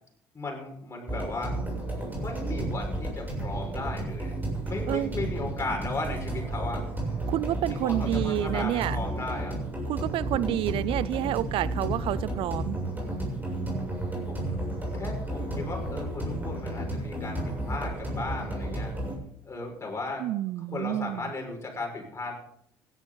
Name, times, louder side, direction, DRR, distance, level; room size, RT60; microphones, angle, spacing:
voice 1, 0.3-1.5 2.2-4.3 4.6-6.8 7.7-9.5 14.3-14.4 14.9-18.9 19.5-20.3 20.7-22.4, left 3 dB, 30° left, 1 dB, 5.7 m, -36 dB
sound 1, 1.1-19.2, right 1 dB, 15° right, 7.2 m, -32 dB
voice 2, 7.3-9.0 9.9-12.8 20.2-21.2, right 14 dB, 60° right, 20 dB, 0.4 m, -29 dB
16.5 x 11.5 x 3.9 m, 0.69 s
hypercardioid pair, 60°, 10 cm